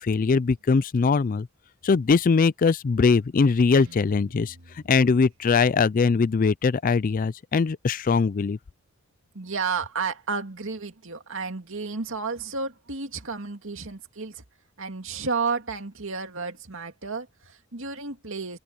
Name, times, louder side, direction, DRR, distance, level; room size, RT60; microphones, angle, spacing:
voice 1, 0.0-1.5 1.8-8.6, left 5 dB, 40° left, 0.4 m, -21 dB
Guitar, 3.7-5.8, right 2 dB, 85° right, 3.3 m, -51 dB
voice 2, 9.3-14.4 14.8-18.6, right 4 dB, 60° right, 2.4 m, -32 dB
open air
head